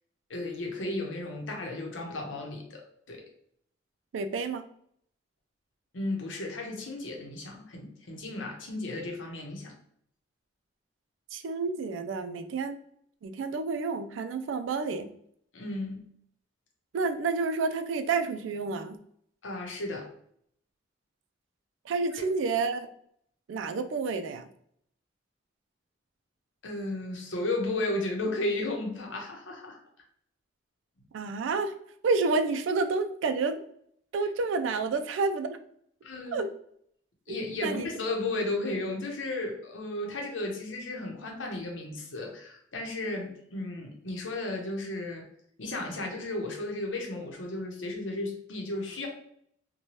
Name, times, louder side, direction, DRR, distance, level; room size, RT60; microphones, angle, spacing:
voice 1, 0.3-3.2 5.9-9.7 15.5-16.0 19.4-20.1 26.6-29.8 36.0-36.4 37.3-45.3 45.6-49.1, left 2 dB, 90° left, 1 dB, 0.8 m, -34 dB
voice 2, 4.1-4.6 11.3-12.8 13.2-15.1 16.9-19.0 21.9-22.9 23.5-24.4 31.1-31.7 32.0-33.6 34.1-35.6 36.3-36.5 37.3-37.9, right 4 dB, 85° right, 8 dB, 0.3 m, -29 dB
2.8 x 2.2 x 3.0 m, 0.67 s
head